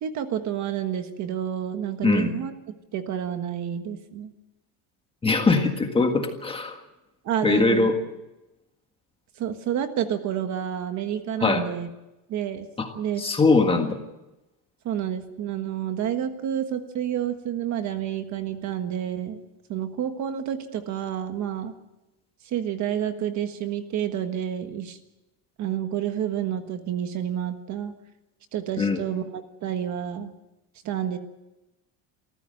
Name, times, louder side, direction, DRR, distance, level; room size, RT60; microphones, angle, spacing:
voice 1, 0.0-2.5 2.9-4.3 7.2-7.9 9.4-11.9 12.3-12.7 12.9-13.2 14.8-19.4 19.7-21.7 22.4-25.0 25.6-27.9 28.5-30.3 30.8-31.2, right 9 dB, 40° right, 8 dB, 1.5 m, -29 dB
voice 2, 2.0-2.3 5.2-6.8 7.4-7.9 11.4-11.6 12.8-12.9 13.2-14.0 28.8-29.0, left 3 dB, 15° left, 5 dB, 1.7 m, -21 dB
27.0 x 14.5 x 7.8 m, 0.99 s
cardioid pair, 180°, 42 cm